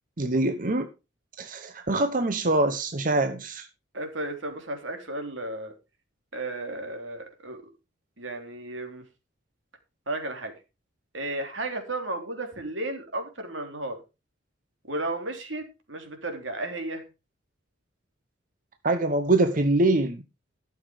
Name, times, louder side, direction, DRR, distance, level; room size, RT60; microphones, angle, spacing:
voice 1, 0.2-0.9 1.4-3.7 18.8-20.2, right 2 dB, 45° right, 0.9 m, -24 dB
voice 2, 3.9-5.7 6.3-7.6 8.2-9.0 10.1-10.5 11.1-14.0 14.9-17.0, right 2 dB, 85° right, 3.2 m, -33 dB
12.5 x 7.2 x 4.9 m
head